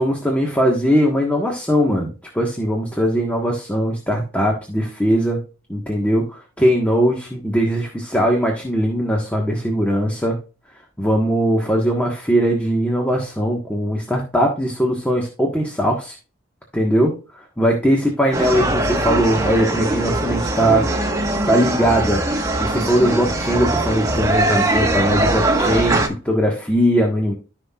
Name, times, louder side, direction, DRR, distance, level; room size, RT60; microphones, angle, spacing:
voice 1, 0.0-5.4 5.7-10.4 11.0-16.2 16.7-20.9 21.5-22.2 22.6-27.3, equal, 5° left, 0 dB, 1.4 m, -20 dB
sound 1, 18.3-26.1, right 2 dB, 15° right, 1.4 m, -21 dB
14.0 x 5.8 x 2.4 m, 0.33 s
head